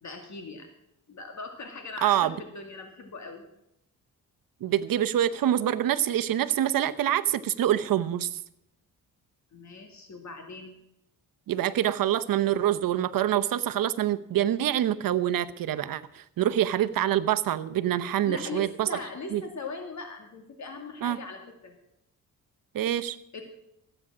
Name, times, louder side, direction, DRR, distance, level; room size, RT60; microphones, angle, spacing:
voice 1, 0.0-0.7 1.1-3.5 9.5-10.8 18.2-21.8 23.3-23.4, left 4 dB, 55° left, 4 dB, 2.3 m, -40 dB
voice 2, 2.0-2.3 4.6-8.4 11.5-18.9 19.3-19.4 21.0-21.2 22.7-23.2, right 11 dB, 70° right, 12 dB, 0.8 m, -26 dB
14.5 x 8.9 x 6.1 m, 0.81 s
cardioid pair, 100°, 35 cm